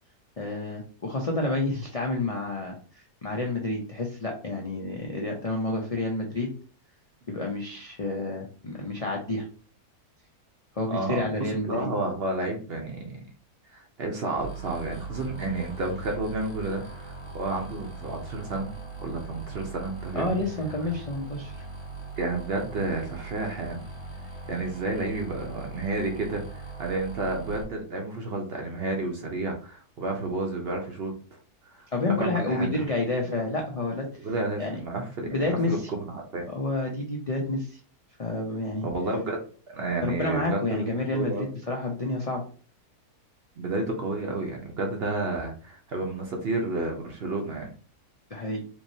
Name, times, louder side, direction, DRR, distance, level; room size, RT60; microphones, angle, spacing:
voice 1, 0.4-6.5 7.3-9.5 10.7-11.9 20.1-21.6 31.9-34.1 34.6-34.8 35.2-35.9 36.5-37.8 38.2-38.9 40.0-42.4 48.3-48.6, left 2 dB, 70° left, 0 dB, 0.3 m, -29 dB
voice 2, 10.9-13.2 13.7-18.7 19.0-20.4 22.2-23.8 24.5-31.1 31.7-32.8 34.2-36.5 38.7-41.5 43.6-47.7, right 2 dB, 55° right, 2 dB, 0.8 m, -31 dB
sound 1, 14.4-27.6, right 3 dB, 25° left, 0.7 m, -40 dB
3.5 x 3.0 x 2.7 m, 0.40 s
omnidirectional pair, 1.6 m